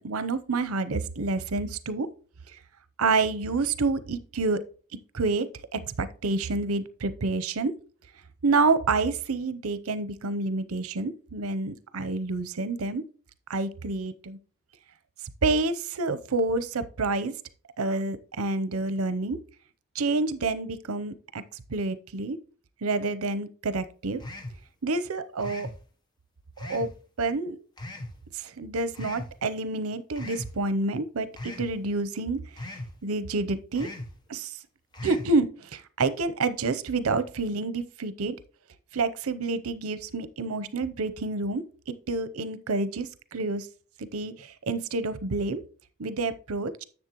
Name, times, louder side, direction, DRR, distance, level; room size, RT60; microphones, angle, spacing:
voice 1, 0.0-2.1 3.0-4.6 5.1-7.7 8.4-13.0 13.5-14.4 15.4-17.3 17.8-19.4 19.9-21.4 21.7-22.4 22.8-24.2 24.8-25.7 26.6-26.9 27.2-27.6 28.3-32.4 33.0-33.9 34.3-34.5 35.0-38.4 38.9-43.7 44.0-45.6 46.0-46.8, right 3 dB, 85° right, 0.7 m, -28 dB
sound 1, 24.2-24.6 25.4-25.8 26.6-26.9 27.8-28.1 28.9-29.3 30.2-30.5 31.4-31.7 32.6-32.9 33.7-34.1 34.9-35.3, left 1 dB, 20° left, 0.9 m, -38 dB
10.5 x 7.1 x 3.0 m
head